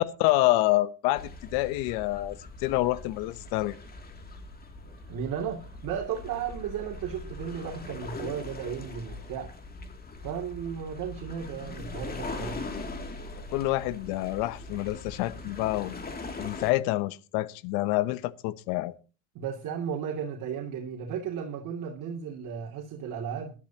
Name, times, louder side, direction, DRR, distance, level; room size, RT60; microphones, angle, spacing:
voice 1, 0.0-3.8 13.3-16.0 16.4-18.9, left 17 dB, 85° left, 17 dB, 1.0 m, -27 dB
sound 1, 1.2-16.7, left 2 dB, 25° left, 2.7 m, -41 dB
voice 2, 5.1-9.5 10.2-12.6 19.3-23.5, right 7 dB, 55° right, 1 dB, 2.8 m, -34 dB
20.5 x 12.5 x 2.9 m, 0.34 s
cardioid pair, 115°, 37 cm